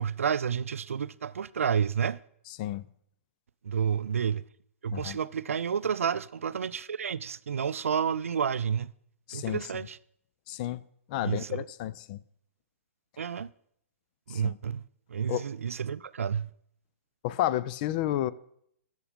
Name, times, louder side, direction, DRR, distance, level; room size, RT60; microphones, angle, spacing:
voice 1, 0.0-2.2 3.6-4.4 4.8-8.9 9.3-10.0 11.2-11.6 13.2-13.5 14.3-14.8 15.1-16.5, right 7 dB, 70° right, 0.4 m, -30 dB
voice 2, 9.3-9.6 10.5-10.8 11.1-12.2 14.3-14.6 15.3-15.4 17.2-18.3, left 13 dB, 35° left, 0.4 m, -31 dB
12.5 x 6.1 x 5.4 m
figure-of-eight pair, 120°, 8 cm